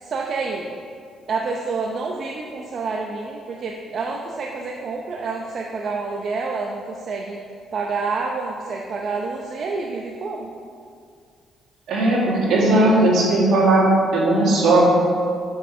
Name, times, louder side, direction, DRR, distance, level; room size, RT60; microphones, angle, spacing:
voice 1, 0.0-0.7 1.3-7.4 7.7-10.5, right 4 dB, 55° right, 0 dB, 0.8 m, -28 dB
voice 2, 11.9-14.9, right 2 dB, 75° right, -3 dB, 2.4 m, -17 dB
7.3 x 6.3 x 6.1 m, 2.3 s
cardioid pair, 90°, 0 cm